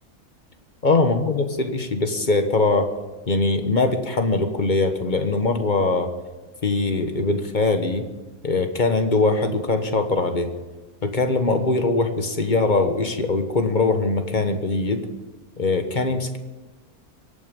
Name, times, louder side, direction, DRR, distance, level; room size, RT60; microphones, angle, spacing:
voice 1, 0.8-2.9 3.3-6.1 6.6-8.1 8.4-10.5 11.0-15.1 15.6-16.4, left 3 dB, 35° left, 7 dB, 1.4 m, -22 dB
23.5 x 9.2 x 5.3 m, 1.3 s
omnidirectional pair, 1.5 m